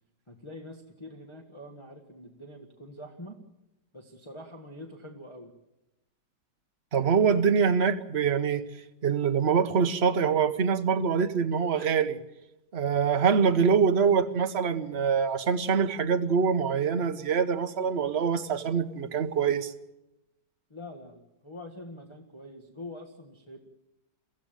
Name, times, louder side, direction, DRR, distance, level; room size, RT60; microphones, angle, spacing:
voice 1, 0.3-3.4 3.9-5.5 20.7-23.7, left 1 dB, 15° left, 0 dB, 1.6 m, -45 dB
voice 2, 6.9-8.6 9.0-12.2 12.7-19.7, right 6 dB, 40° right, 8 dB, 1.2 m, -24 dB
23.5 x 15.5 x 9.0 m, 0.95 s
omnidirectional pair, 1.9 m